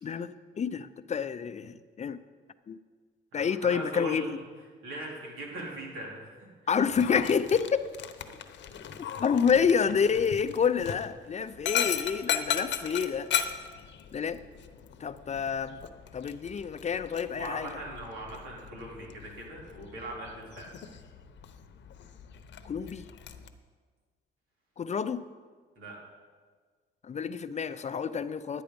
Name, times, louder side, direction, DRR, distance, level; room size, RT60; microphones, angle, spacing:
voice 1, 0.0-2.2 2.7-2.8 3.3-4.4 6.7-7.8 9.2-13.3 14.1-14.4 15.0-15.8 16.1-17.8 22.6-23.0 24.8-25.2 27.0-28.6, left 6 dB, 35° left, 13 dB, 0.5 m, -28 dB
voice 2, 3.3-4.3 4.8-6.5 17.3-20.7 25.7-26.0, right 1 dB, 85° right, -2 dB, 3.3 m, -40 dB
Dog, 6.9-23.5, left 9 dB, 65° left, 0.8 m, -37 dB
11.5 x 8.9 x 5.2 m, 1.5 s
cardioid pair, 90°, 20 cm